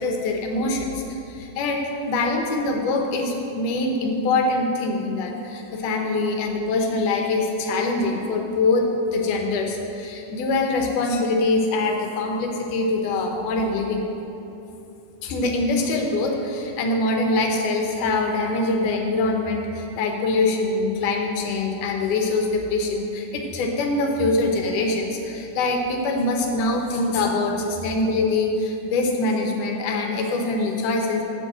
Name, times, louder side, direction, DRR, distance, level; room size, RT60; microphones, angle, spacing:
voice 1, 0.0-1.8 2.1-14.0 15.2-31.2, left 2 dB, 85° left, 2 dB, 2.4 m, -24 dB
7.2 x 5.4 x 7.2 m, 2.8 s
omnidirectional pair, 3.5 m